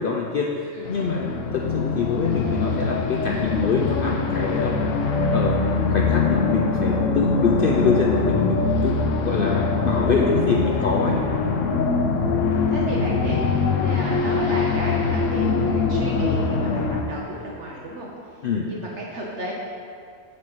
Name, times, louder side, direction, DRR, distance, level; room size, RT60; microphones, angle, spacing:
voice 1, 0.0-4.8 5.3-11.2 18.4-18.7, left 5 dB, 55° left, 0 dB, 0.7 m, -25 dB
sound 1, 0.9-17.0, left 4 dB, 75° left, 1.0 m, -23 dB
voice 2, 5.8-6.1 10.7-10.9 12.0-12.3 12.7-18.4 18.7-19.5, right 1 dB, 65° right, -3 dB, 1.2 m, -34 dB
6.7 x 5.2 x 7.1 m, 2.3 s
omnidirectional pair, 1.4 m